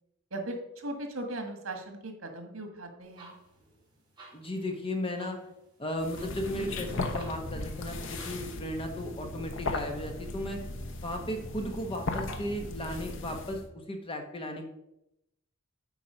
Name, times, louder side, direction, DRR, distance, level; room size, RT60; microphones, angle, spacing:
voice 1, 0.3-3.3, right 1 dB, 80° right, 5 dB, 1.6 m, -38 dB
sound 1, 3.0-8.6, right 3 dB, 20° right, 3.6 m, -56 dB
voice 2, 4.3-5.4 5.8-10.6 11.0-14.6, left 1 dB, 25° left, 4 dB, 1.2 m, -35 dB
sound 2, 6.0-13.7, left 2 dB, 65° left, 0.9 m, -37 dB
8.9 x 4.6 x 5.5 m, 0.85 s
head